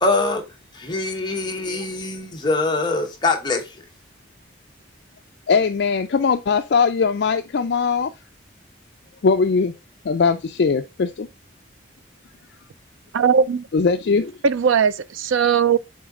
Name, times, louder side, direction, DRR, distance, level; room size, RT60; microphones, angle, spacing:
voice 1, 0.0-0.4 0.7-3.7, left 3 dB, 20° left, 1.1 m, -23 dB
voice 2, 5.5-8.1 9.2-9.7 10.0-11.3 13.7-14.3, left 5 dB, 55° left, 0.4 m, -20 dB
voice 3, 13.1-13.7 14.4-15.8, right 6 dB, 80° right, 0.4 m, -18 dB
6.6 x 3.9 x 3.7 m
head